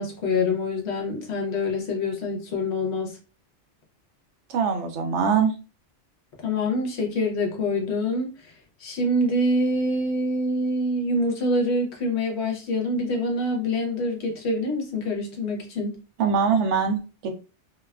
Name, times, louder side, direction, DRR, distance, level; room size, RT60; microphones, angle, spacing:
voice 1, 0.0-3.2 6.4-8.5 8.8-16.0, left 1 dB, 70° left, 1 dB, 1.0 m, -25 dB
voice 2, 4.5-5.5 16.2-17.3, right 6 dB, 80° right, 5 dB, 0.9 m, -23 dB
2.7 x 2.3 x 2.2 m, 0.33 s
omnidirectional pair, 1.2 m